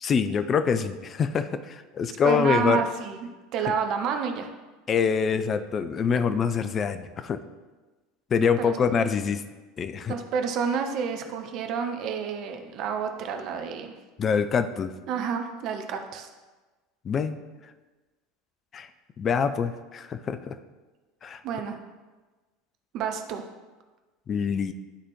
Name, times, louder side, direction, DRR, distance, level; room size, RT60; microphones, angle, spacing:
voice 1, 0.0-2.8 4.9-7.4 8.3-9.4 9.8-10.1 14.2-14.9 17.0-17.4 18.7-18.9 19.2-20.6 21.2-21.4 24.3-24.7, left 6 dB, 30° left, 10 dB, 0.4 m, -25 dB
voice 2, 2.2-4.5 8.6-8.7 10.1-13.9 15.1-16.3 21.4-21.8 22.9-23.4, right 6 dB, 45° right, 6 dB, 0.7 m, -29 dB
11.5 x 4.1 x 3.1 m, 1.2 s
figure-of-eight pair, 70°, 0 cm